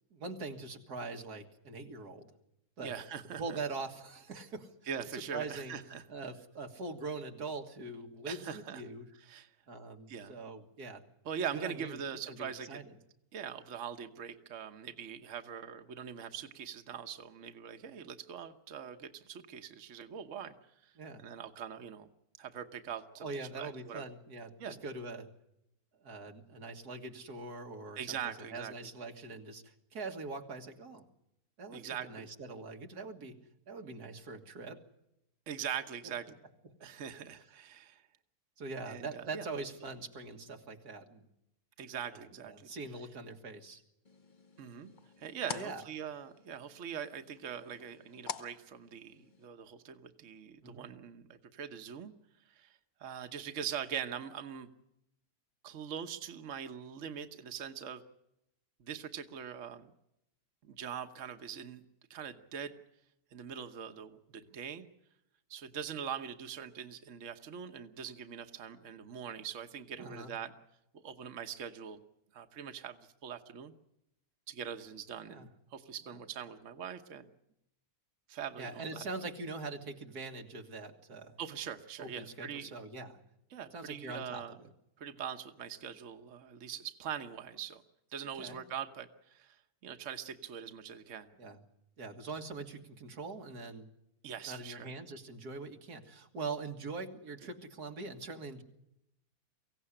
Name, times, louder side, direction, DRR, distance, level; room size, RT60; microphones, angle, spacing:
voice 1, 0.1-2.3 2.8-3.0 3.4-4.7 5.1-5.8 6.1-9.1 9.7-11.0 11.5-12.0 12.3-12.9 21.0-21.2 23.2-25.3 26.0-31.0 31.6-33.4 33.7-34.8 36.8-37.0 38.6-41.3 42.1-43.8 45.5-45.8 50.6-50.8 70.0-70.3 75.3-75.5 76.1-76.2 78.6-81.4 82.0-83.2 83.7-84.7 88.4-88.6 91.4-91.6 92.0-93.9 94.5-98.6, right 3 dB, 90° right, 3 dB, 2.3 m, -43 dB
voice 2, 2.8-3.6 4.9-6.0 8.3-8.8 9.2-9.5 10.1-10.4 11.2-12.8 13.3-20.5 20.8-20.9 21.2-22.1 22.4-23.2 23.6-24.0 24.6-24.8 28.0-28.7 31.7-32.3 35.5-36.3 36.8-38.0 38.9-39.4 41.8-42.7 44.6-44.9 45.2-52.1 52.5-54.7 55.6-58.0 58.8-59.9 60.6-61.8 62.1-62.7 63.3-64.9 65.5-70.5 70.9-72.0 72.3-73.7 74.5-77.3 78.3-79.0 81.4-82.7 83.5-84.6 85.0-87.8 88.1-89.6 89.8-91.3 94.2-94.9, right 8 dB, 55° right, 7 dB, 1.4 m, -42 dB
sound 1, 44.0-49.5, left 5 dB, 35° left, 1.1 m, -48 dB
24.0 x 16.5 x 9.9 m, 0.83 s
omnidirectional pair, 1.6 m